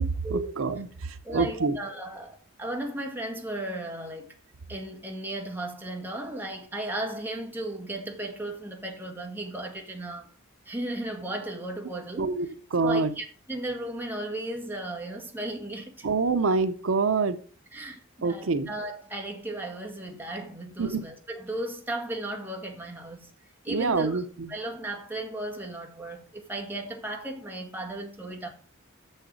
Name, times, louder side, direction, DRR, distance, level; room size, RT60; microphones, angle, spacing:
voice 1, 0.3-1.8 12.2-13.1 16.0-17.4 18.2-18.7 20.8-21.0 23.7-24.5, right 4 dB, 80° right, 0.6 m, -26 dB
voice 2, 1.2-4.3 4.7-10.3 10.6-12.3 12.8-16.1 17.7-23.3 23.6-24.2 24.5-28.5, right 1 dB, 10° right, 1.8 m, -35 dB
6.9 x 6.5 x 6.2 m
head